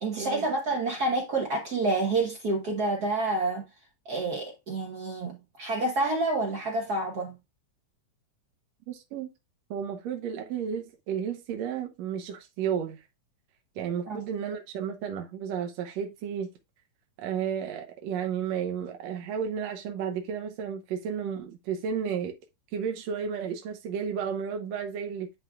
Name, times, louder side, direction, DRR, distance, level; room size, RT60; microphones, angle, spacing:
voice 1, 0.0-3.7 4.0-7.4 14.1-14.3, right 2 dB, 90° right, 0.8 m, -28 dB
voice 2, 8.9-9.3 9.7-13.0 13.8-16.5 17.2-22.4 22.7-25.3, right 7 dB, 70° right, 1.9 m, -32 dB
9.6 x 4.6 x 2.3 m
omnidirectional pair, 3.5 m